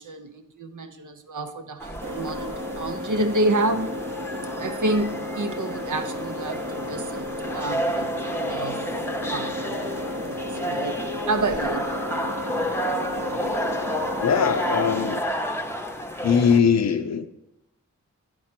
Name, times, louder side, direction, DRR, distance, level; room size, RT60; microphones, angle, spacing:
voice 1, 0.0-4.0 4.6-7.3 7.5-8.8 9.3-11.0 11.3-11.9, right 2 dB, 90° right, 7 dB, 0.7 m, -29 dB
sound 1, 1.8-16.6, equal, 10° left, 0.6 m, -31 dB
sound 2, 2.0-15.2, left 1 dB, 45° right, 0.7 m, -33 dB
voice 2, 14.2-15.2 16.2-17.3, left 6 dB, 60° left, 7 dB, 0.5 m, -21 dB
9.0 x 4.4 x 5.9 m, 0.90 s
wide cardioid pair, 45°, 30 cm